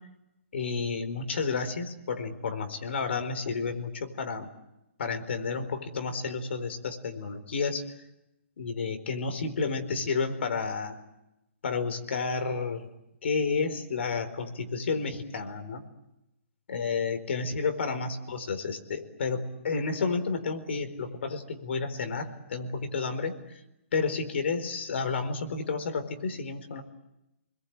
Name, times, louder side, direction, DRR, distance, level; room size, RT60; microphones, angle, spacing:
voice 1, 0.5-4.5 5.0-7.8 8.6-11.0 11.6-12.9 13.2-15.8 16.7-23.3 23.9-26.8, left 4 dB, 60° left, 8 dB, 4.4 m, -31 dB
28.5 x 22.0 x 8.8 m, 0.90 s
hypercardioid pair, 165°, 7 cm